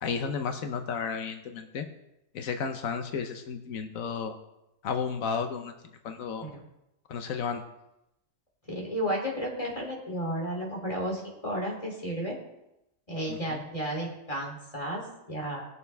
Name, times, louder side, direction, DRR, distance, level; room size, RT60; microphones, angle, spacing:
voice 1, 0.0-1.9 2.3-4.3 4.8-5.7 6.0-6.5 7.1-7.6 13.3-13.6, left 6 dB, 90° left, 6 dB, 1.3 m, -33 dB
voice 2, 8.7-12.4 13.1-15.7, equal, 25° left, -2 dB, 3.2 m, -33 dB
19.5 x 6.9 x 3.4 m, 0.88 s
omnidirectional pair, 1.4 m